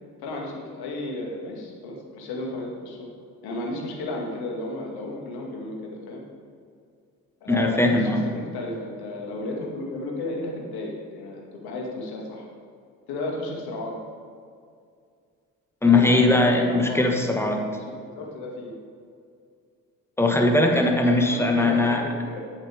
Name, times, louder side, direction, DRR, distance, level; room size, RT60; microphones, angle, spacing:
voice 1, 0.2-3.1 3.4-5.8 6.1-6.2 7.4-12.5 13.1-14.0 15.8-17.3 18.2-18.7 21.1-22.4, left 2 dB, 65° left, -1 dB, 1.9 m, -33 dB
voice 2, 7.5-8.2 15.8-17.7 20.2-22.0, left 2 dB, 5° left, 2 dB, 1.4 m, -20 dB
9.0 x 8.1 x 3.5 m, 2.3 s
hypercardioid pair, 50°, 41 cm